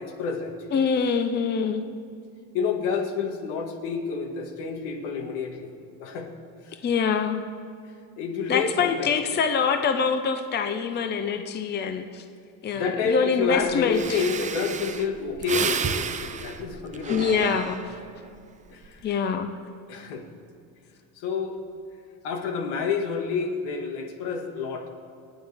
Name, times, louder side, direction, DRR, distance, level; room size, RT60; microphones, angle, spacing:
voice 1, 0.0-0.8 2.5-6.3 6.6-6.8 8.2-9.2 12.6-17.5 18.7-19.1 19.9-20.2 21.2-21.6 22.2-24.9, left 5 dB, 80° left, 2 dB, 2.0 m, -29 dB
voice 2, 0.7-1.8 6.8-7.4 8.5-12.2 12.6-14.2 17.1-18.0 19.0-19.5, left 6 dB, 25° left, 7 dB, 0.7 m, -25 dB
Breathing, 13.6-13.7 13.9-18.2 18.6-19.0, right 6 dB, 20° right, 0.4 m, -31 dB
28.0 x 9.5 x 3.5 m, 2.3 s
cardioid pair, 145°, 40 cm